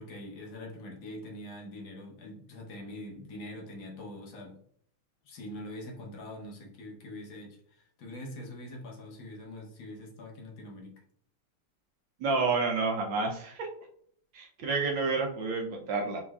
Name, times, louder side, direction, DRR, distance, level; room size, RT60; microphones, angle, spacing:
voice 1, 0.0-4.6 5.2-11.0, left 1 dB, 65° left, 0 dB, 1.7 m, -44 dB
voice 2, 12.2-13.7 14.3-16.2, right 4 dB, 70° right, 1 dB, 1.4 m, -29 dB
5.8 x 3.1 x 2.3 m, 0.62 s
omnidirectional pair, 2.4 m